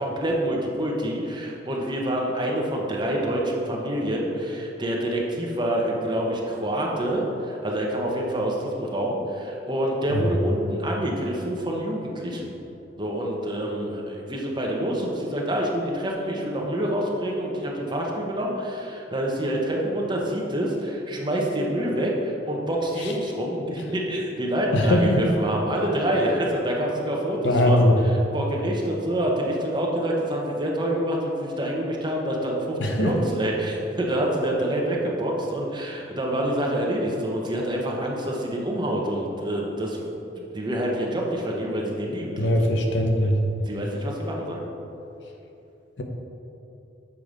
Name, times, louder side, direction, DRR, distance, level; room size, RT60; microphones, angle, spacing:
voice 1, 0.0-12.5 13.0-27.8 28.3-40.1 40.4-42.5 43.7-44.6, right 1 dB, 25° right, -2 dB, 0.9 m, -27 dB
voice 2, 24.7-25.3 27.4-28.0 32.8-33.1 42.4-43.4 46.0-46.1, left 1 dB, 80° left, 3 dB, 0.8 m, -21 dB
7.1 x 4.7 x 5.1 m, 2.8 s
head